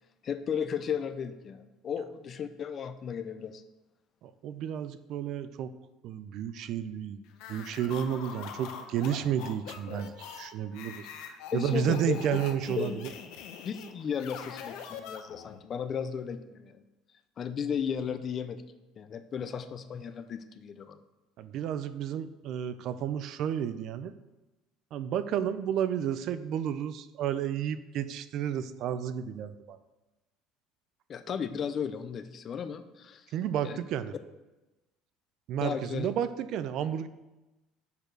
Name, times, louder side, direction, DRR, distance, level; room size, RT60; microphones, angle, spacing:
voice 1, 0.2-3.6 11.5-12.2 12.8-13.0 13.6-16.8 17.4-18.6 19.0-21.0 31.1-33.3 33.6-33.8 35.6-36.1, left 7 dB, 30° left, 10 dB, 0.5 m, -35 dB
voice 2, 4.2-5.7 6.0-7.2 7.5-13.1 21.4-24.1 24.9-29.8 33.3-34.1 35.5-37.1, right 9 dB, 50° right, 13 dB, 0.4 m, -32 dB
sound 1, 7.3-15.6, left 7 dB, 70° left, 0.8 m, -44 dB
6.8 x 5.0 x 6.0 m, 1.1 s
cardioid pair, 155°, 0 cm